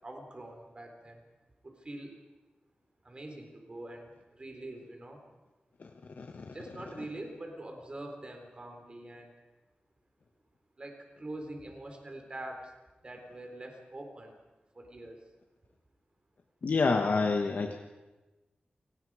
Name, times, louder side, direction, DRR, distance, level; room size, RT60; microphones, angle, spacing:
voice 1, 0.0-1.2 1.6-2.1 3.0-5.2 6.4-9.3 10.8-12.7 13.0-14.3 14.7-15.2, right 1 dB, 35° right, 3 dB, 4.0 m, -44 dB
voice 2, 6.2-6.5 16.6-17.7, left 4 dB, 65° left, 3 dB, 1.4 m, -28 dB
29.5 x 19.0 x 5.0 m, 1.1 s
wide cardioid pair, 120°, 3 cm